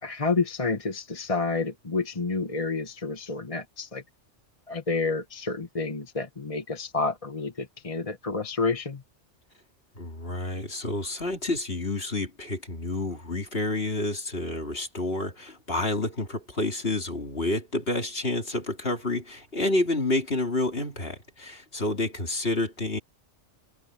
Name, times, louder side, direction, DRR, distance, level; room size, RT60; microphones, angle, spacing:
voice 1, 0.0-4.0 4.7-9.0, left 3 dB, 30° left, 1.4 m, -29 dB
voice 2, 10.0-23.0, left 2 dB, 55° left, 3.7 m, -29 dB
open air
omnidirectional pair, 1.2 m